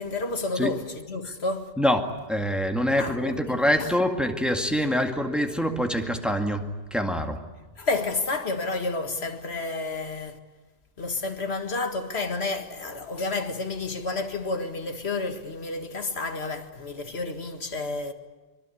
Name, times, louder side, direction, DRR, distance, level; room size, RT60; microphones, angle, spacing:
voice 1, 0.0-1.7 3.0-3.2 3.8-3.9 7.8-10.4 11.0-18.1, left 3 dB, 85° left, 2.1 m, -30 dB
voice 2, 1.8-7.4, equal, ahead, 2.0 m, -25 dB
24.5 x 23.0 x 8.6 m
omnidirectional pair, 1.0 m